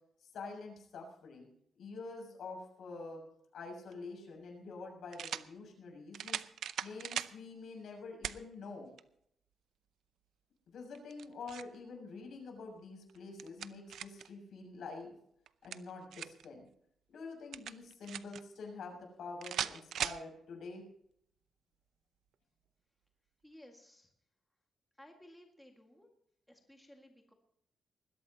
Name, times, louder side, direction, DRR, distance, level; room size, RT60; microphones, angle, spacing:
voice 1, 0.2-1.5 1.8-3.2 3.5-6.4 6.8-8.9 10.7-15.1 15.6-16.6 17.1-20.8, left 3 dB, 70° left, 1 dB, 6.6 m, -47 dB
sound 1, 3.9-4.0 5.1-5.5 6.1-7.4 8.2-8.4 9.0-9.1 10.9-11.8 13.1-14.3 15.5-16.5 17.5-18.4 19.4-20.2, right 9 dB, 85° right, 0.6 m, -39 dB
voice 2, 23.4-24.1 25.0-26.1 26.5-27.3, left 1 dB, 5° left, 1 dB, 1.9 m, -58 dB
21.0 x 15.5 x 2.9 m, 0.70 s
wide cardioid pair, 155°, 0 cm